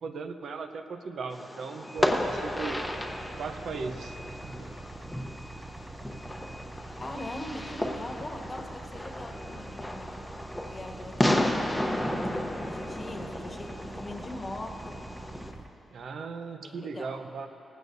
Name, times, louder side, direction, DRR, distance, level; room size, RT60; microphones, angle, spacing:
voice 1, 0.0-2.8 3.4-4.7 15.9-17.5, right 4 dB, 65° right, 6 dB, 0.8 m, -38 dB
Fireworks, 1.3-15.5, left 1 dB, 5° left, 0.9 m, -33 dB
sound 1, 2.0-15.7, right 2 dB, 20° right, 0.6 m, -45 dB
voice 2, 7.0-10.2 10.7-12.1 12.6-15.0 16.6-17.2, left 1 dB, 25° left, 2 dB, 1.3 m, -41 dB
19.0 x 15.5 x 2.7 m, 3.0 s
wide cardioid pair, 135°, 0 cm